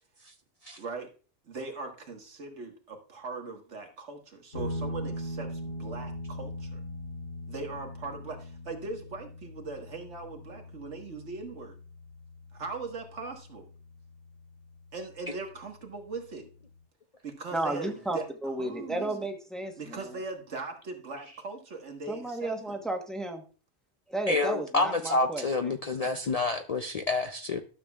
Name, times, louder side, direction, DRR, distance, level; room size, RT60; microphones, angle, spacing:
voice 1, 0.8-1.1 1.5-6.8 7.5-11.7 12.5-13.7 14.9-16.5 17.2-18.3 18.6-19.1 19.8-22.8, right 3 dB, 85° right, 1.7 m, -40 dB
sound 1, 4.5-13.6, equal, 80° left, 3.2 m, -40 dB
voice 2, 17.5-20.2 22.1-23.4 24.1-25.8 26.0-26.1, right 1 dB, ahead, 1.0 m, -33 dB
voice 3, 24.3-27.6, left 3 dB, 50° left, 0.5 m, -28 dB
12.5 x 6.9 x 2.3 m
omnidirectional pair, 1.2 m